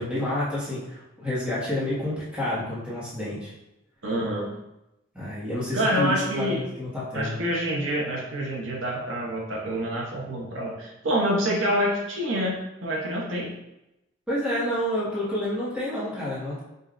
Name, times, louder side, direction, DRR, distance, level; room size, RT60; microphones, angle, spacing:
voice 1, 0.0-3.5 5.1-7.4 14.3-16.6, left 1 dB, 5° right, -10 dB, 1.3 m, -29 dB
voice 2, 4.0-4.5 5.7-6.6 7.1-13.5, equal, 75° right, -3 dB, 0.8 m, -27 dB
5.1 x 2.6 x 2.5 m, 0.91 s
head